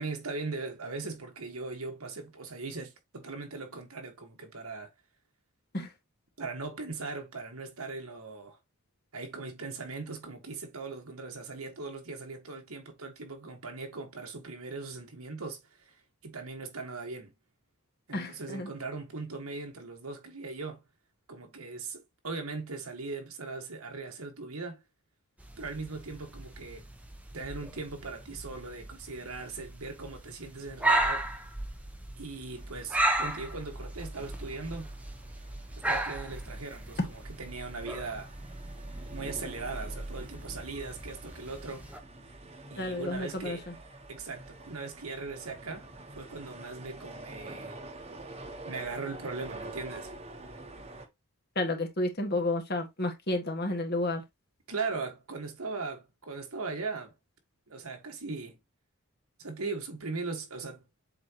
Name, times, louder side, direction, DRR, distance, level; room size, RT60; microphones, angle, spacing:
voice 1, 0.0-4.9 6.4-8.6 9.1-15.9 16.2-17.3 18.1-20.8 21.3-24.8 25.6-26.9 27.3-31.3 32.2-34.9 35.8-37.0 37.4-38.3 39.1-41.9 42.7-43.6 44.1-47.8 48.6-50.1 54.7-57.1 57.7-58.6 59.4-60.8, right 3 dB, 85° right, 1.7 m, -39 dB
voice 2, 18.1-18.7 37.0-37.1 42.7-43.7 51.5-54.2, left 2 dB, 45° left, 1.7 m, -31 dB
sound 1, 25.4-42.0, right 1 dB, 5° right, 0.8 m, -35 dB
sound 2, 32.5-51.1, right 2 dB, 30° right, 1.2 m, -47 dB
7.5 x 4.4 x 3.0 m
head